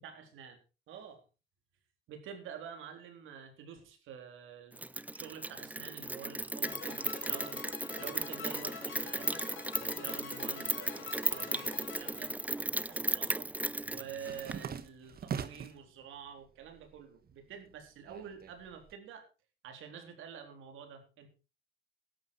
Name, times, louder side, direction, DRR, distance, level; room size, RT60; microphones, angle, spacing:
voice 1, 0.0-0.6 0.9-1.2 2.1-7.6 8.0-9.5 9.8-12.4 12.7-13.5 13.9-19.3 19.6-21.3, right 7 dB, 85° right, 5 dB, 3.8 m, -48 dB
Rain, 4.8-14.6, right 2 dB, 10° right, 0.5 m, -36 dB
sound 1, 6.6-12.9, left 7 dB, 85° left, 3.4 m, -47 dB
sound 2, 11.9-12.7 13.0-15.9 16.3-17.0 17.3-18.9, right 7 dB, 50° right, 1.4 m, -42 dB
14.0 x 11.5 x 4.7 m, 0.33 s
cardioid pair, 90°, 20 cm